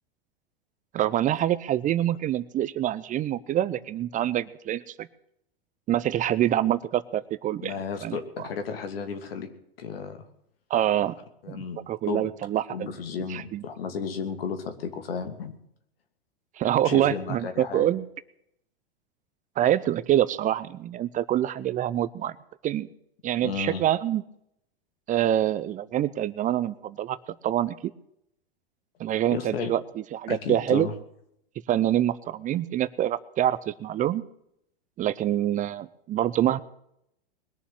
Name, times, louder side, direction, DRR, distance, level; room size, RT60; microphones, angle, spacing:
voice 1, 0.9-5.1 5.9-7.7 8.0-8.5 10.7-11.1 11.9-12.9 13.3-13.6 16.6-18.0 19.6-22.3 22.6-22.9 23.2-24.2 25.1-27.2 27.4-27.7 29.0-29.8 30.1-30.9 31.7-34.2 35.0-36.6, right 12 dB, 25° right, 16 dB, 0.7 m, -25 dB
voice 2, 7.6-9.5 9.8-10.2 11.4-11.8 12.1-12.3 12.7-15.5 16.8-17.9 23.4-23.8 29.3-29.7 30.3-30.9, left 6 dB, 75° left, 8 dB, 2.8 m, -33 dB
21.0 x 7.1 x 9.1 m, 0.74 s
hypercardioid pair, 110°, 30 cm